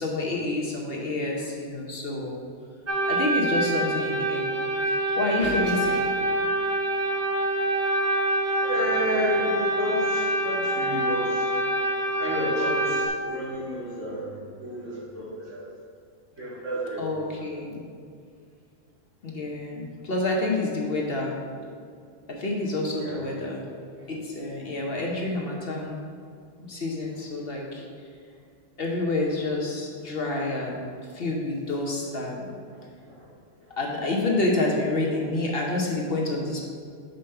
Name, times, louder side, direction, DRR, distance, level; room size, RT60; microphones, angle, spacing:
voice 1, 0.0-2.4 3.1-4.5 4.8-6.1 17.0-17.8 19.2-21.3 22.3-23.6 24.1-26.0 26.6-27.9 28.8-32.5 33.8-36.6, left 2 dB, 50° left, -1 dB, 1.0 m, -28 dB
sound 1, 2.9-13.1, right 1 dB, 15° right, 0.7 m, -26 dB
voice 2, 8.6-11.6 12.2-15.7 16.4-17.2 23.0-23.2 33.0-33.2, equal, 70° right, -7 dB, 2.3 m, -31 dB
5.4 x 5.0 x 5.6 m, 2.2 s
omnidirectional pair, 1.3 m